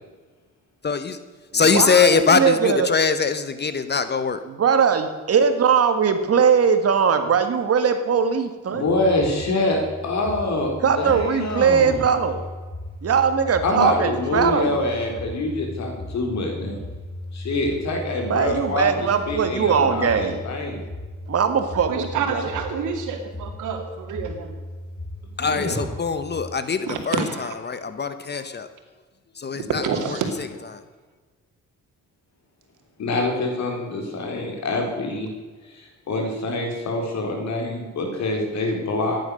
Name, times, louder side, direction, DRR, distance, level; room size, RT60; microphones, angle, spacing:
voice 1, 0.8-1.2 1.5-4.4 25.4-28.7 29.3-30.5 30.7-30.8, left 5 dB, 35° left, 11 dB, 1.2 m, -22 dB
voice 2, 1.7-2.9 4.6-8.8 10.8-12.4 13.0-14.8 18.3-20.4 21.3-22.4, right 6 dB, 50° right, 8 dB, 1.9 m, -20 dB
voice 3, 8.7-12.1 13.6-16.8 17.3-20.8 25.4-25.8 33.0-35.3 35.7-39.2, left 2 dB, 65° left, 2 dB, 4.2 m, -25 dB
sound 1, 8.9-26.4, left 1 dB, 20° left, 3.7 m, -37 dB
voice 4, 21.9-24.5 26.9-27.5 29.7-30.3, right 6 dB, 80° right, 5 dB, 2.6 m, -28 dB
15.5 x 11.0 x 6.6 m, 1.4 s
cardioid pair, 90°, 30 cm